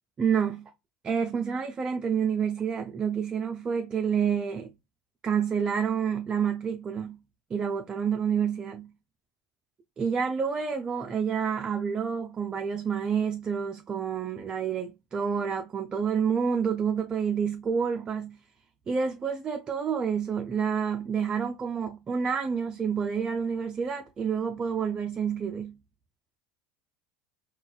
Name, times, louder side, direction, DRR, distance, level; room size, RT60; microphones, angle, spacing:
voice 1, 0.2-0.7 1.0-4.7 5.2-7.2 7.5-8.9 10.0-18.4 18.9-25.7, right 7 dB, 30° right, 0.4 m, -28 dB
4.0 x 2.2 x 2.2 m
hypercardioid pair, 75°, 3 cm